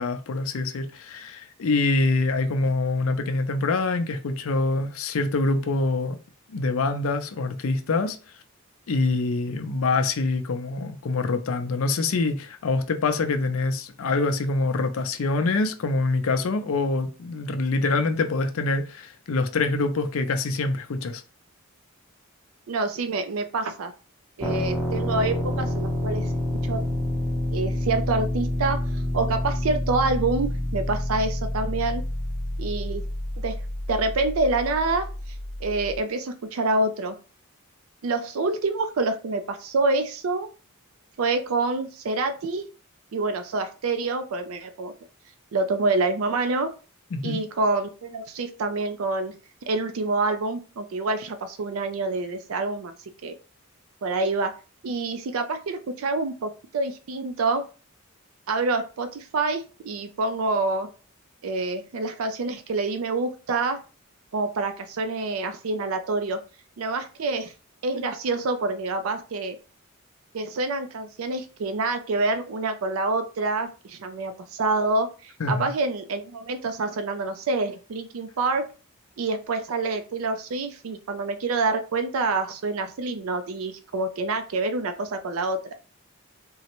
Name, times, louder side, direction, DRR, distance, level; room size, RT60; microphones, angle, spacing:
voice 1, 0.0-6.2 6.5-8.2 8.9-21.2 47.1-47.4 75.4-75.7, left 3 dB, 70° left, 0.5 m, -25 dB
voice 2, 22.7-23.9 24.4-26.3 26.6-26.8 27.5-32.0 32.6-33.0 33.4-33.6 33.9-35.1 35.6-37.2 38.0-40.5 41.2-42.6 43.1-44.9 45.5-46.7 47.2-49.4 49.7-52.9 53.2-53.3 54.0-54.5 54.8-57.6 58.5-60.9 61.4-63.8 64.3-66.4 66.8-67.5 67.8-69.6 70.3-78.6 79.2-85.7, right 3 dB, 75° right, 0.4 m, -27 dB
sound 1, 24.4-36.0, left 1 dB, 5° right, 0.6 m, -28 dB
3.7 x 2.1 x 2.9 m
head